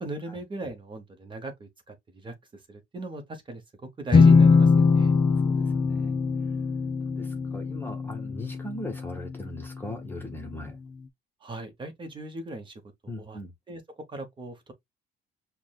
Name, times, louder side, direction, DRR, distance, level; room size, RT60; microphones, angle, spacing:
voice 1, 0.0-2.3 2.7-3.6 4.0-5.1 11.4-13.4 13.7-13.8 14.1-14.7, right 2 dB, 30° right, 1.0 m, -38 dB
sound 1, 4.1-9.7, left 4 dB, 30° left, 0.4 m, -21 dB
voice 2, 5.4-6.2 7.1-10.8 13.1-13.5, left 1 dB, 10° left, 0.9 m, -39 dB
5.9 x 2.2 x 2.3 m
cardioid pair, 110°, 17 cm